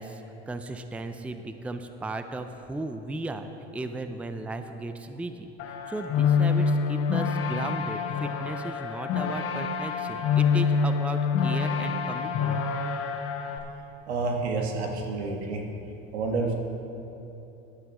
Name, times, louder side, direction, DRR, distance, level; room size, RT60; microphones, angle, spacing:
voice 1, 0.0-5.5 5.9-12.6, right 2 dB, 5° right, 8 dB, 0.5 m, -36 dB
sound 1, 5.6-13.6, left 6 dB, 45° left, 1.1 m, -26 dB
voice 2, 14.1-15.6 16.1-16.5, right 3 dB, 85° right, 2 dB, 1.6 m, -29 dB
15.0 x 11.5 x 3.1 m, 3.0 s
supercardioid pair, 100°, 32 cm